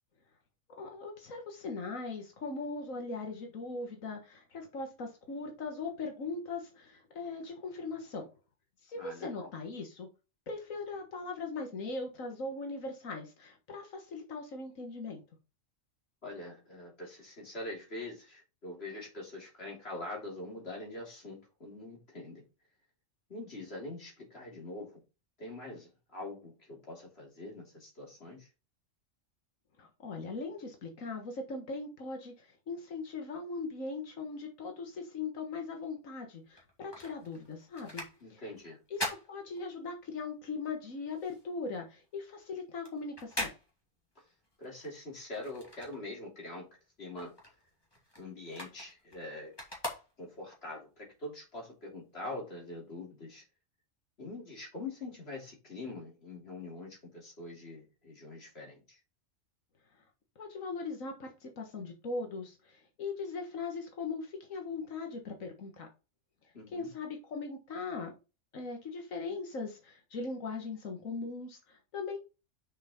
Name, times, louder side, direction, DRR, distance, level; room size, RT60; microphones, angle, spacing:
voice 1, 0.8-8.3 8.8-10.1 10.5-15.2 29.8-38.4 38.9-43.5 60.4-65.9 66.7-68.1 68.5-72.2, left 3 dB, 90° left, 3 dB, 1.8 m, -40 dB
voice 2, 8.9-9.5 16.2-22.4 23.3-25.0 25.4-28.5 38.2-38.8 44.6-46.7 47.0-47.3 48.2-49.6 50.2-53.4 54.2-59.0 66.5-66.9, left 2 dB, 50° left, -2 dB, 3.3 m, -44 dB
sound 1, 36.5-40.2 40.5-46.5 46.8-50.6 51.1-51.2, left 1 dB, 20° left, 2.4 m, -43 dB
6.6 x 5.6 x 4.3 m, 0.30 s
omnidirectional pair, 1.3 m